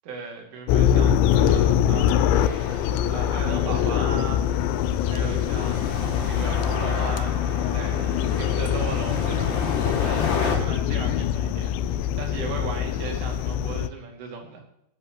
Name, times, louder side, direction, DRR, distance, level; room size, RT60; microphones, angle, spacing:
voice 1, 0.0-4.5 5.1-5.9 6.2-7.4 7.7-14.6, right 5 dB, 90° right, 1 dB, 5.1 m, -37 dB
sound 1, 0.7-13.9, left 10 dB, 80° left, 2.8 m, -23 dB
sound 2, 2.3-10.6, left 4 dB, 50° left, 3.5 m, -32 dB
17.5 x 9.8 x 3.1 m, 0.79 s
omnidirectional pair, 5.4 m